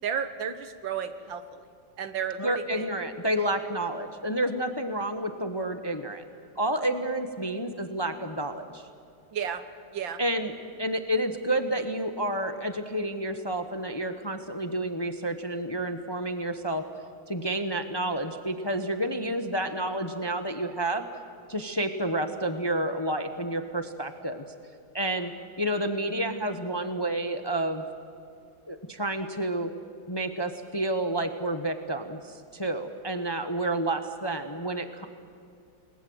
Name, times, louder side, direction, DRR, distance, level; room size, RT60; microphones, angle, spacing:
voice 1, 0.0-1.7 2.0-2.9 9.3-9.6 9.9-10.2, right 7 dB, 85° right, 10 dB, 2.0 m, -33 dB
voice 2, 2.4-6.2 6.6-8.9 10.2-10.5 10.8-16.8 17.3-21.1 21.5-24.4 24.9-25.3 25.6-27.8 28.7-29.7 30.1-35.1, right 1 dB, 20° left, 7 dB, 0.8 m, -30 dB
29.5 x 20.5 x 7.9 m, 2.5 s
omnidirectional pair, 2.0 m